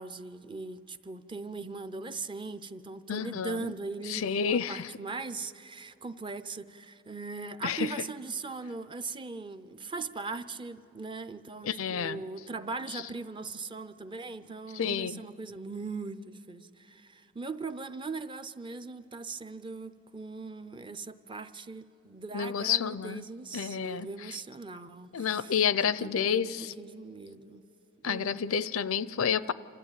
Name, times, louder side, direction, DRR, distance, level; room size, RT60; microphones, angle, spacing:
voice 1, 0.0-25.6 26.0-27.6 28.0-28.4, right 3 dB, 25° right, 0.5 m, -40 dB
voice 2, 3.1-3.7 4.1-4.9 7.6-7.9 11.6-12.2 14.7-15.2 22.3-23.2 23.5-24.1 25.1-26.7 28.0-29.5, left 7 dB, 85° left, 0.5 m, -29 dB
26.5 x 14.0 x 9.0 m
head